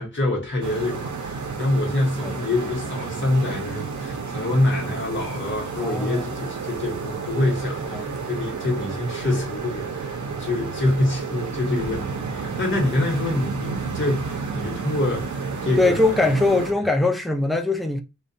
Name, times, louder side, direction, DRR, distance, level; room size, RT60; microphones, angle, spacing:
voice 1, 0.0-16.1 16.8-16.9, left 2 dB, 40° left, 0.9 m, -26 dB
sound 1, 0.6-16.7, right 5 dB, 70° right, 0.6 m, -31 dB
voice 2, 5.8-6.4 7.9-8.1 11.7-11.9 15.8-18.0, left 2 dB, ahead, 0.4 m, -22 dB
2.3 x 2.1 x 2.6 m
wide cardioid pair, 75°, 30 cm